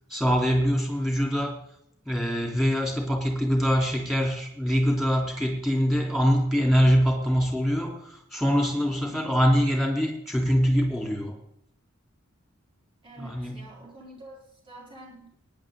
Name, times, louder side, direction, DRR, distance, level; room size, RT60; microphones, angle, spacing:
voice 1, 0.1-1.6 2.0-11.3 13.2-13.6, equal, ahead, 0 dB, 3.4 m, -24 dB
voice 2, 9.0-9.4 13.0-15.3, right 1 dB, 25° right, -4 dB, 4.7 m, -47 dB
19.0 x 10.5 x 3.9 m, 0.71 s
head